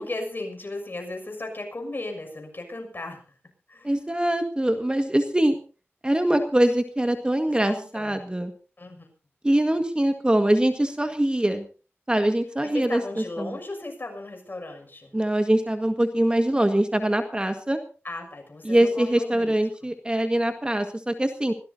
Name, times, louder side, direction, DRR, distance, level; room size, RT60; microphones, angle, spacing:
voice 1, 0.0-3.2 3.7-3.9 7.7-8.2 8.8-9.1 12.6-15.1 18.0-19.5, left 2 dB, 45° left, 4 dB, 6.5 m, -36 dB
voice 2, 3.8-5.6 6.0-8.5 9.4-11.7 12.1-13.6 15.1-17.8 18.6-21.5, right 1 dB, 20° right, 7 dB, 1.7 m, -23 dB
25.0 x 16.5 x 2.8 m, 0.36 s
wide cardioid pair, 60°, 5 cm